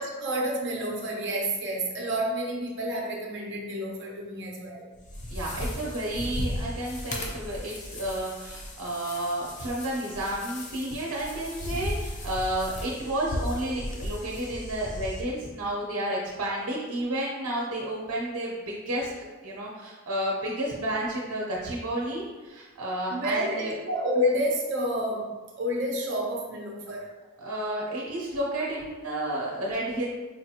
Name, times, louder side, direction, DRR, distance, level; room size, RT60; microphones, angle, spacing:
voice 1, 0.0-4.9 23.1-27.1, equal, 55° right, -1 dB, 0.6 m, -29 dB
sound 1, 4.9-15.2, left 1 dB, 35° left, 0.4 m, -36 dB
voice 2, 5.3-19.1 19.4-23.7 27.4-30.1, right 1 dB, 90° right, -4 dB, 0.7 m, -31 dB
4.7 x 2.4 x 2.8 m, 1.2 s
head